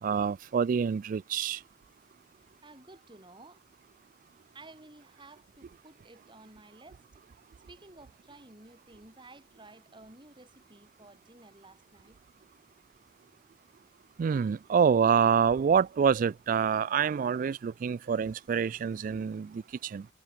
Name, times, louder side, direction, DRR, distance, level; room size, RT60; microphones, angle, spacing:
voice 1, 0.0-1.6 14.2-20.1, right 6 dB, 50° right, 0.3 m, -26 dB
voice 2, 2.4-3.6 4.5-7.2 7.7-12.2, right 2 dB, 25° right, 4.9 m, -54 dB
head